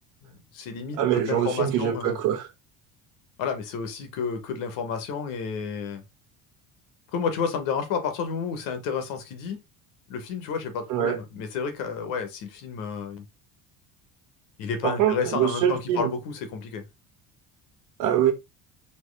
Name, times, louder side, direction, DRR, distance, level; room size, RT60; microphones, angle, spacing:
voice 1, 0.2-2.2 3.4-6.0 7.1-9.6 10.1-13.2 14.6-16.8, left 6 dB, 65° left, 1.1 m, -31 dB
voice 2, 1.0-2.5 10.9-11.2 14.8-16.1 18.0-18.3, right 10 dB, 55° right, 1.0 m, -24 dB
4.4 x 2.8 x 3.2 m
cardioid pair, 170°, 35 cm